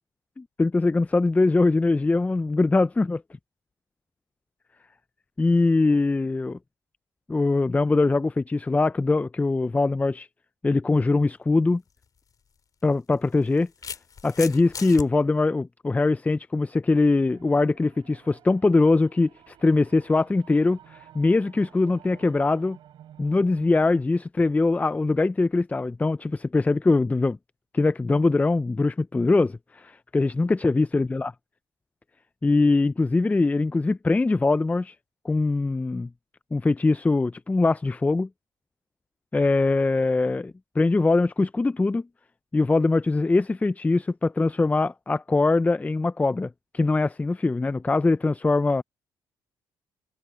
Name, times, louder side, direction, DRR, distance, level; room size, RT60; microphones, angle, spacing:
voice 1, 0.4-3.2 5.4-6.6 7.3-10.3 10.6-11.8 12.8-13.7 14.2-22.8 23.2-27.4 27.7-31.3 32.4-34.9 35.2-36.1 36.5-38.3 39.3-42.1 42.5-48.8, left 3 dB, 15° left, 0.5 m, -22 dB
sound 1, 11.9-12.0 13.1-15.1, left 6 dB, 45° left, 2.7 m, -37 dB
sound 2, 17.3-24.1, right 11 dB, 70° right, 4.9 m, -52 dB
supercardioid pair, 70°, 8 cm